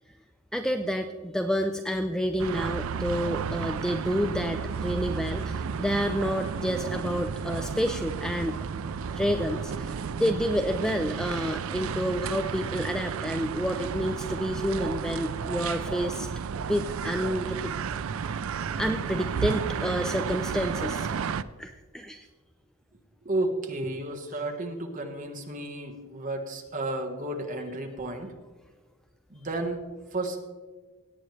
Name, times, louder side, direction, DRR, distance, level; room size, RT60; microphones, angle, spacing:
voice 1, 0.5-8.6 9.1-16.3 16.7-17.7 18.8-21.1 21.6-22.3, equal, 5° left, 7 dB, 0.3 m, -29 dB
sound 1, 2.4-21.4, right 6 dB, 70° right, 0.4 m, -32 dB
voice 2, 23.2-28.3 29.3-29.8 30.1-30.4, right 2 dB, 35° right, 3 dB, 1.3 m, -32 dB
17.5 x 8.7 x 3.2 m, 1.3 s
head